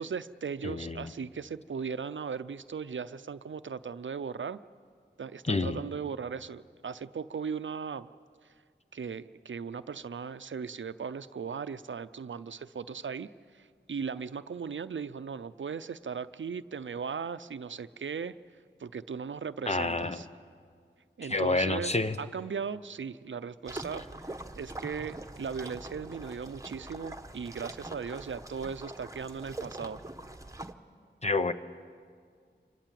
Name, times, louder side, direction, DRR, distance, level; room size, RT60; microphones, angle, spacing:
voice 1, 0.0-4.6 5.2-8.1 8.9-18.4 18.8-20.3 21.2-30.0, right 6 dB, 85° right, 14 dB, 0.6 m, -38 dB
voice 2, 0.6-1.1 5.5-5.8 19.7-20.2 21.3-22.2 31.2-31.5, left 2 dB, 35° left, 10 dB, 1.0 m, -28 dB
sound 1, 23.6-30.7, right 2 dB, 15° right, 1.1 m, -43 dB
26.0 x 21.0 x 7.6 m, 2.1 s
wide cardioid pair, 50°, 19 cm